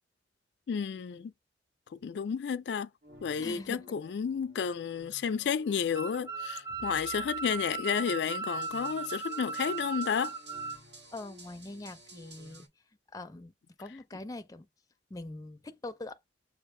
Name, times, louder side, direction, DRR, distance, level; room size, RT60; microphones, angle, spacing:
voice 1, 0.7-1.3 2.0-2.9 3.2-10.3, left 7 dB, 75° left, 0.4 m, -32 dB
sound 1, 3.0-12.7, right 1 dB, 70° right, 1.8 m, -54 dB
voice 2, 3.3-4.0 11.1-12.7 13.1-13.5 13.8-14.7 15.1-16.2, left 2 dB, 20° left, 0.5 m, -43 dB
sound 2, 5.9-10.8, right 4 dB, 20° right, 0.8 m, -37 dB
6.3 x 2.4 x 3.2 m
head